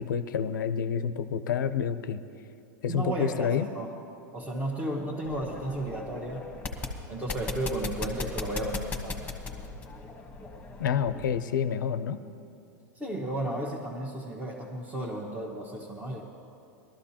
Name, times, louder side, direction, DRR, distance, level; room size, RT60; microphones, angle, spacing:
voice 1, 0.0-2.2 2.8-3.7 10.8-12.2, left 8 dB, 80° left, 12 dB, 0.6 m, -28 dB
voice 2, 2.9-3.9 4.3-6.5 7.1-9.3 12.9-16.2, right 1 dB, 15° right, -4 dB, 1.3 m, -33 dB
sound 1, 5.2-11.4, left 3 dB, 15° left, 1.2 m, -38 dB
19.0 x 13.0 x 2.9 m, 2.7 s
hypercardioid pair, 115°, 10 cm